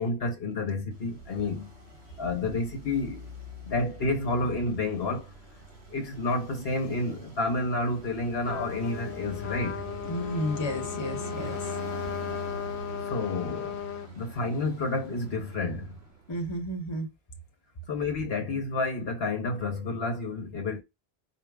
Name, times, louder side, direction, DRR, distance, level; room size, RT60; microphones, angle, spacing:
voice 1, 0.0-1.7 2.2-3.3 3.6-5.3 5.9-9.8 13.1-13.8 14.1-16.0 17.9-20.8, left 2 dB, 65° left, 1.3 m, -30 dB
Traffic noise roadway noise, 0.9-16.4, right 2 dB, 75° right, 1.6 m, -43 dB
Trumpet, 8.5-14.1, left 10 dB, 85° left, 0.9 m, -36 dB
voice 2, 10.1-11.6 16.3-17.1, equal, 25° left, 1.0 m, -32 dB
4.6 x 2.3 x 3.6 m
omnidirectional pair, 1.1 m